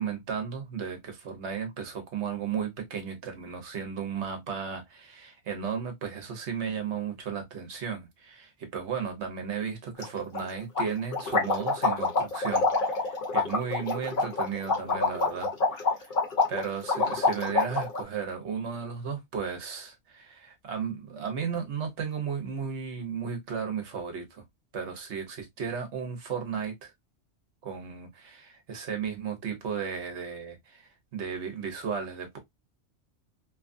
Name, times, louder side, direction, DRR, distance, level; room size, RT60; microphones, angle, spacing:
voice 1, 0.0-16.1 16.5-24.4 24.7-26.9 27.6-32.4, right 6 dB, 75° right, 1.2 m, -34 dB
sound 1, 10.0-10.1 10.3-10.4 10.8-18.0, left 3 dB, 50° left, 1.1 m, -26 dB
2.9 x 2.4 x 2.4 m
omnidirectional pair, 1.2 m